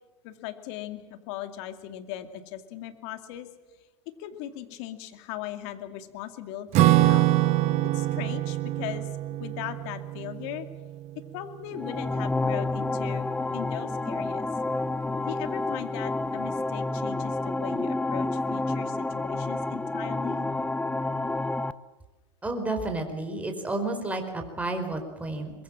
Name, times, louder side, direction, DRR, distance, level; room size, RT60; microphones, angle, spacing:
voice 1, 0.2-3.5 4.2-7.3 7.9-9.1 9.4-10.7 11.3-13.3 13.5-14.5 15.3-20.5, left 12 dB, 60° left, 9 dB, 2.4 m, -38 dB
Acoustic guitar / Strum, 6.7-11.5, right 15 dB, 45° right, 1.3 m, -25 dB
sound 1, 11.7-21.7, left 2 dB, 5° left, 0.8 m, -29 dB
voice 2, 22.4-25.5, right 2 dB, 10° right, 4 dB, 4.5 m, -31 dB
23.0 x 21.5 x 7.5 m, 1.2 s
hypercardioid pair, 105°, 16 cm